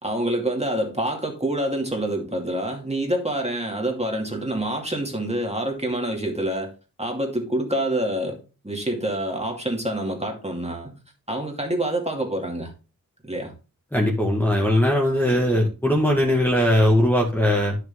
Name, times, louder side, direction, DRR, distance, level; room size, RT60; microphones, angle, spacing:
voice 1, 0.0-6.7 7.0-11.0 11.3-12.7 13.2-13.5, right 1 dB, 20° right, 2.5 m, -27 dB
voice 2, 13.9-17.8, left 1 dB, 5° left, 1.8 m, -20 dB
10.5 x 6.5 x 3.7 m
wide cardioid pair, 70°, 34 cm